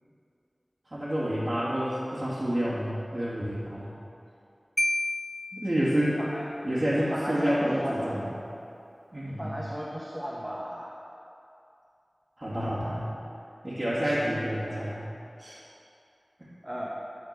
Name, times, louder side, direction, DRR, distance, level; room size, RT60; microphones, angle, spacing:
voice 1, 0.9-3.9 5.5-6.2 6.6-8.3 9.1-9.6 12.4-13.1 13.6-15.0 15.4-15.6 16.4-16.5, equal, 35° right, -11 dB, 2.2 m, -29 dB
Marimba xylophone, 4.8-6.5, left 1 dB, 10° left, 0.3 m, -31 dB
voice 2, 7.1-8.0 9.3-11.0 13.9-14.0 16.6-16.9, equal, 10° right, -5 dB, 1.2 m, -36 dB
12.5 x 4.3 x 6.7 m, 2.7 s
wide cardioid pair, 60°, 0 cm